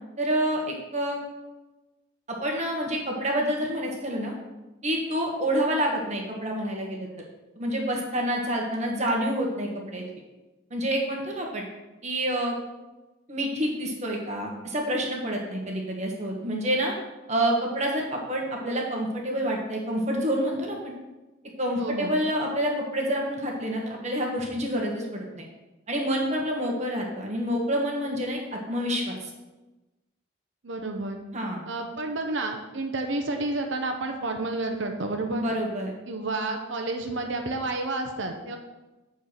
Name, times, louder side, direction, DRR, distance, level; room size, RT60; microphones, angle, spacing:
voice 1, 0.2-1.2 2.3-4.3 4.8-7.1 7.5-10.0 10.7-11.6 12.0-12.5 13.3-16.9 17.3-20.9 21.6-25.4 25.9-29.3 31.3-31.6 35.3-35.9, equal, 35° right, 0 dB, 1.5 m, -28 dB
voice 2, 21.8-22.2 30.6-31.2 31.7-35.4 36.1-38.6, right 2 dB, 65° right, 4 dB, 0.8 m, -30 dB
8.0 x 4.6 x 6.6 m, 1.1 s
head